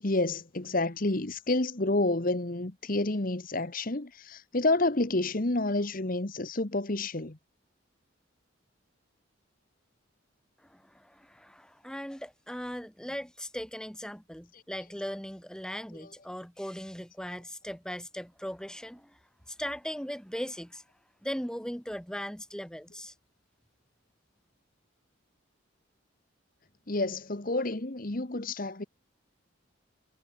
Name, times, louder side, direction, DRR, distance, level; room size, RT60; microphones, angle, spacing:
voice 1, 0.0-7.4 14.5-14.6 16.0-16.1 26.9-28.8, left 2 dB, 40° left, 1.3 m, -29 dB
voice 2, 10.6-19.2 19.5-20.8 21.2-23.1, equal, 5° left, 2.2 m, -39 dB
head